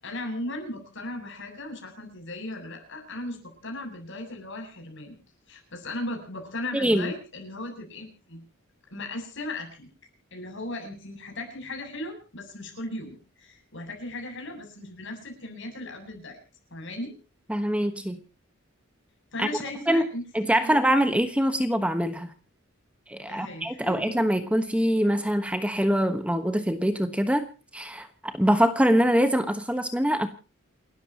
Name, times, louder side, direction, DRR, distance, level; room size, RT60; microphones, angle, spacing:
voice 1, 0.0-5.1 5.5-8.4 8.9-9.9 10.3-16.4 16.7-17.1 19.3-20.7 23.3-23.9, left 1 dB, 60° left, 4 dB, 7.8 m, -37 dB
voice 2, 6.7-7.1 17.5-18.2 19.4-19.5 19.9-20.1 20.3-22.3 23.1-27.5 27.7-30.3, equal, 5° right, 8 dB, 1.3 m, -24 dB
29.5 x 13.0 x 3.0 m, 0.35 s
head